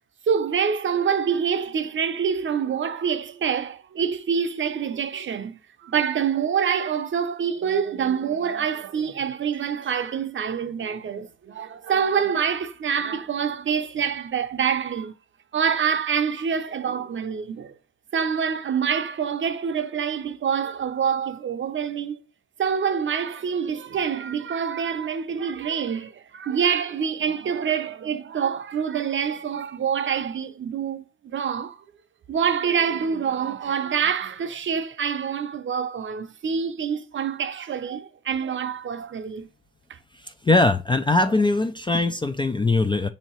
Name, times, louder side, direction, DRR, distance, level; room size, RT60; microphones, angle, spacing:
voice 1, 0.3-15.1 15.5-17.7 18.1-22.2 22.6-31.0 31.3-31.8 32.3-39.5, right 7 dB, 40° right, 0.6 m, -26 dB
voice 2, 40.2-43.1, left 2 dB, 15° left, 0.3 m, -21 dB
6.2 x 2.8 x 3.0 m
cardioid pair, 90°, 30 cm